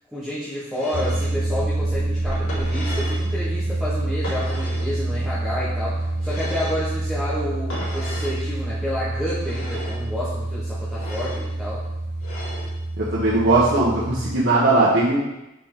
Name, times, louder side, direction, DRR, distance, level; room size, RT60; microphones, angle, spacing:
voice 1, 0.1-11.8, left 1 dB, ahead, -11 dB, 1.4 m, -30 dB
sound 1, 0.7-1.3 2.3-3.3 4.2-4.9 6.2-6.9 7.7-8.4 9.3-10.0 10.9-11.4 12.2-12.7, equal, 80° left, 2.6 m, -35 dB
sound 2, 0.9-14.4, right 2 dB, 35° right, 0.8 m, -27 dB
voice 2, 13.0-15.2, right 2 dB, 55° right, -9 dB, 1.5 m, -19 dB
7.0 x 5.3 x 3.9 m, 0.95 s
head